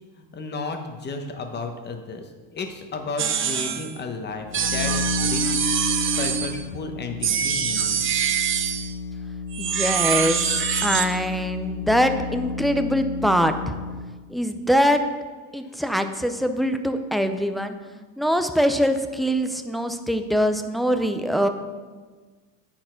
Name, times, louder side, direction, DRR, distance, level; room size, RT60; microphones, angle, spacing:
voice 1, 0.2-5.6 6.2-8.0, left 3 dB, 30° left, 5 dB, 1.0 m, -33 dB
sound 1, 3.2-3.9 4.5-6.6 7.2-8.9 9.5-11.1, right 7 dB, 35° right, 0.7 m, -24 dB
sound 2, 4.3-14.2, left 5 dB, 85° left, 1.0 m, -32 dB
voice 2, 9.6-13.7 14.3-15.0 15.5-17.8 18.2-21.5, equal, ahead, 7 dB, 0.4 m, -23 dB
9.0 x 4.3 x 5.7 m, 1.4 s
cardioid pair, 120°, 34 cm